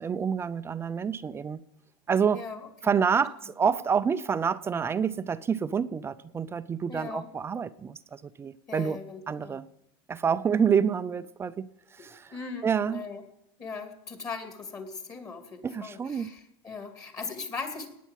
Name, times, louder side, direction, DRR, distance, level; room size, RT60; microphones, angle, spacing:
voice 1, 0.0-1.6 2.1-2.4 2.8-9.0 9.3-9.7 10.1-12.3 12.6-13.0 15.6-16.3, right 6 dB, 20° right, 0.6 m, -28 dB
voice 2, 2.3-2.9 6.9-7.3 8.7-9.6 12.0-13.2 13.6-17.9, left 4 dB, 25° left, 2.7 m, -39 dB
18.5 x 9.3 x 7.4 m
supercardioid pair, 135°, 13 cm